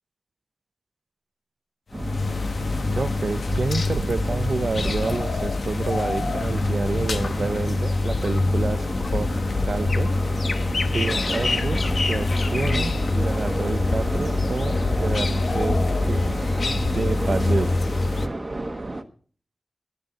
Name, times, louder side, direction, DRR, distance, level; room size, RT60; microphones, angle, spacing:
sound 1, 1.9-18.3, left 3 dB, 75° left, 1.0 m, -25 dB
sound 2, 1.9-19.0, right 2 dB, 35° right, 1.3 m, -32 dB
voice 1, 2.9-8.9 9.1-9.3 9.6-10.1 10.9-11.8 12.0-14.7 15.0-16.2 16.7-17.8, right 4 dB, 70° right, 15 dB, 0.5 m, -28 dB
18.0 x 11.0 x 4.0 m, 0.43 s
wide cardioid pair, 90°, 0 cm